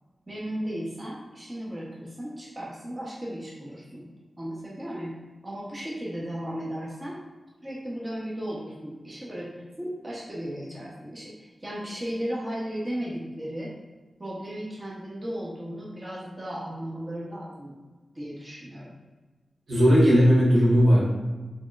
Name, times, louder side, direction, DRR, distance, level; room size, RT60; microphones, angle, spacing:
voice 1, 0.3-4.1 4.4-7.2 7.6-13.7 14.2-17.7 18.1-18.9, equal, 20° right, -5 dB, 0.8 m, -35 dB
voice 2, 19.7-21.1, equal, 75° right, -6 dB, 1.2 m, -17 dB
4.5 x 3.0 x 2.4 m, 1.3 s
wide cardioid pair, 105°, 0 cm